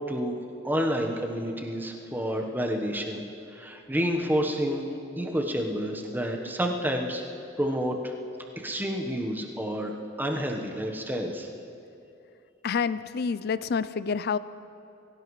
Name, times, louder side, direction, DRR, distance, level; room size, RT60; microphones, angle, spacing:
voice 1, 0.1-0.4 0.6-3.2 3.5-4.9 5.2-7.2 7.6-8.1 8.6-9.9 10.2-11.5, equal, 10° right, 1 dB, 1.1 m, -29 dB
voice 2, 12.6-14.4, left 5 dB, 50° left, 15 dB, 0.4 m, -28 dB
23.0 x 16.0 x 3.2 m, 2.7 s
head